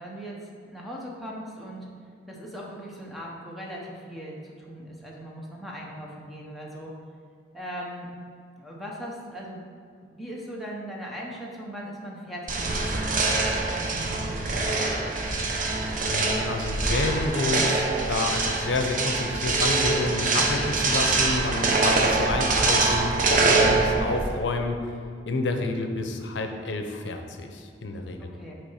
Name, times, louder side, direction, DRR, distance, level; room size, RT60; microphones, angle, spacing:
voice 1, 0.0-1.9 2.3-6.9 7.5-8.1 8.5-9.6 10.0-13.2 13.7-15.6 28.2-28.5, equal, ahead, -3 dB, 0.9 m, -39 dB
sound 1, 12.5-24.4, right 3 dB, 50° right, 0.7 m, -24 dB
voice 2, 16.0-24.8 25.3-28.3, left 2 dB, 85° left, 4 dB, 0.6 m, -29 dB
6.0 x 3.4 x 5.7 m, 2.2 s
head